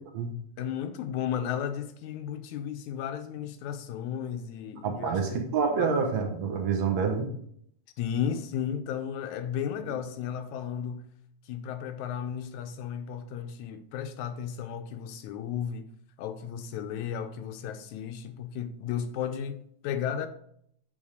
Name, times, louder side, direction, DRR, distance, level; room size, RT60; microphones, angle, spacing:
voice 1, 0.6-5.4 5.8-5.9 8.0-11.1 11.5-15.9 16.2-20.3, left 8 dB, 85° left, 2.1 m, -34 dB
voice 2, 4.8-7.3, right 5 dB, 70° right, 2.2 m, -27 dB
8.9 x 3.5 x 6.4 m
omnidirectional pair, 3.3 m